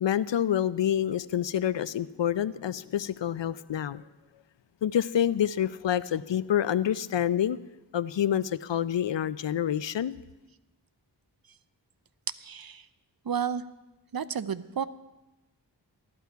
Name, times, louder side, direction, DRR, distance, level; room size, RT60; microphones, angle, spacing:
voice 1, 0.0-4.0 4.8-7.6 7.9-10.1, left 10 dB, 85° left, 16 dB, 0.5 m, -27 dB
voice 2, 12.4-12.8 13.3-13.6 14.1-14.8, right 7 dB, 55° right, 14 dB, 0.6 m, -31 dB
14.5 x 12.5 x 4.6 m, 1.0 s
wide cardioid pair, 50°, 42 cm